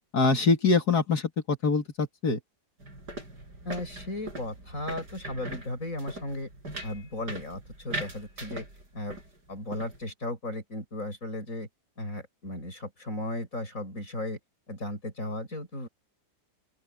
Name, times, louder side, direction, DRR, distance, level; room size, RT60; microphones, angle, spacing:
voice 1, 0.1-1.2 1.5-2.4, left 4 dB, 65° left, 3.0 m, -24 dB
sound 1, 2.8-9.3 9.6-10.0, right 2 dB, 75° right, 8.8 m, -40 dB
voice 2, 3.6-6.5 6.8-8.6 8.9-9.2 9.5-11.7 12.0-14.4 14.7-15.9, left 1 dB, 50° left, 8.3 m, -35 dB
open air
omnidirectional pair, 1.8 m